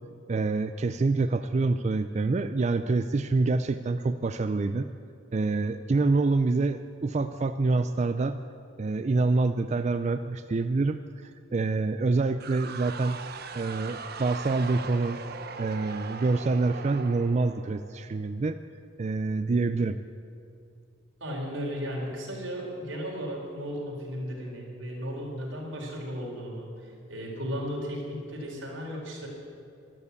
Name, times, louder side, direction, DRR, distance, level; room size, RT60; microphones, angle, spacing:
voice 1, 0.3-4.9 5.3-8.4 8.8-13.2 13.5-15.2 15.6-18.6 19.0-20.0, right 3 dB, 35° right, 10 dB, 0.4 m, -26 dB
sound 1, 12.4-18.2, right 4 dB, 55° right, 0.9 m, -40 dB
voice 2, 21.2-29.3, equal, 85° right, -2 dB, 4.1 m, -35 dB
12.5 x 12.0 x 8.3 m, 2.6 s
head